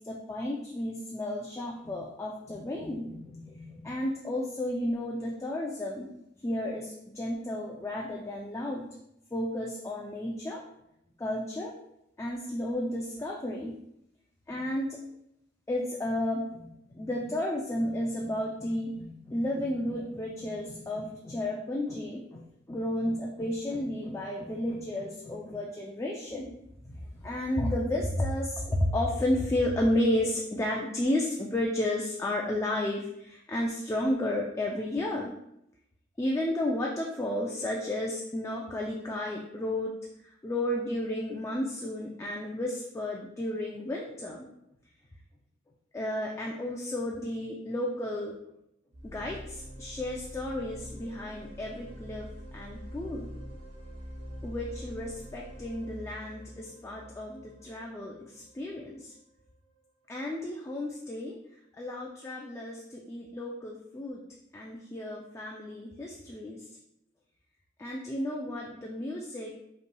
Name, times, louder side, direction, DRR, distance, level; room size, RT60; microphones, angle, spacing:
voice 1, 0.0-6.1 6.4-8.9 9.3-10.6 11.2-11.7 12.2-13.8 14.5-15.0 15.7-26.6 26.9-35.3 36.2-39.9 40.4-44.5 45.9-48.3 49.0-52.3 52.5-53.3 54.4-59.1 60.1-61.3 61.8-64.2 64.5-66.6 67.8-69.6, left 1 dB, 15° left, -2 dB, 0.4 m, -32 dB
sound 1, 48.9-58.7, equal, 75° right, 0.9 m, -45 dB
5.3 x 3.1 x 2.2 m, 0.81 s
head